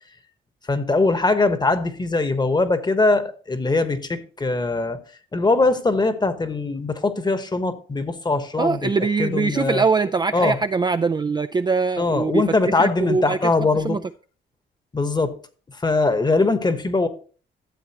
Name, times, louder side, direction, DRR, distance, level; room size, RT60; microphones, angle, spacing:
voice 1, 0.7-5.0 5.3-8.9 9.2-9.8 10.3-10.6 12.0-14.0 14.9-15.3 15.8-17.1, left 3 dB, 20° left, 1.2 m, -21 dB
voice 2, 8.6-13.5 13.8-14.0, right 4 dB, 20° right, 0.4 m, -22 dB
13.0 x 7.4 x 2.9 m
cardioid pair, 90°, 20 cm